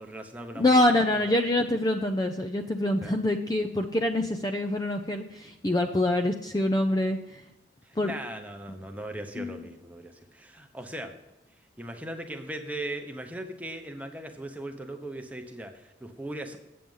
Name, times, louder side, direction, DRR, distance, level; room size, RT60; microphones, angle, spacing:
voice 1, 0.0-1.4 3.0-3.2 7.8-11.1 11.8-16.6, right 1 dB, 10° right, 4 dB, 0.9 m, -39 dB
voice 2, 0.6-7.2 8.0-8.1 9.4-9.6, left 1 dB, 20° left, 5 dB, 0.5 m, -25 dB
8.6 x 7.7 x 5.4 m, 0.93 s
head